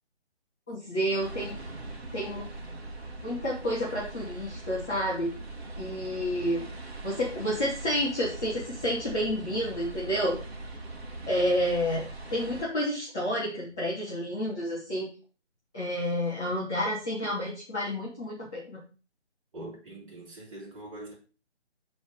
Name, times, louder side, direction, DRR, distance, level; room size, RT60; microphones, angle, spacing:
voice 1, 0.7-1.6 2.1-2.4 3.2-5.3 5.8-6.6 7.0-10.4 11.3-15.1 15.7-18.8, equal, 5° left, 0.5 m, -30 dB
sound 1, 1.2-12.7, right 2 dB, 65° right, 2.3 m, -41 dB
voice 2, 19.5-21.1, right 1 dB, 30° right, 3.9 m, -43 dB
10.5 x 4.2 x 4.9 m
figure-of-eight pair, 150°, 34 cm